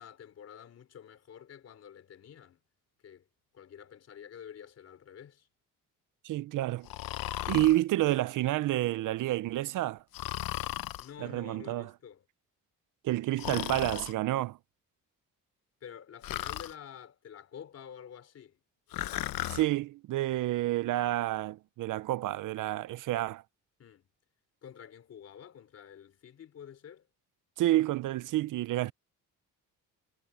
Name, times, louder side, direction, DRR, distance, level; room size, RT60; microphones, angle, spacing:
voice 1, 0.0-2.6 3.0-3.3 3.5-5.5 11.0-12.2 15.8-18.6 23.8-24.1 24.6-27.1, left 8 dB, 45° left, 3.4 m, -49 dB
voice 2, 6.2-6.9 7.5-10.0 11.2-11.9 13.0-14.6 19.5-23.4 27.6-28.9, right 15 dB, 65° right, 0.5 m, -29 dB
Breathing, 6.9-7.8 10.1-11.1 13.4-14.1 16.2-16.7 18.9-19.6, left 15 dB, 80° left, 0.9 m, -35 dB
cardioid pair, 180°, 34 cm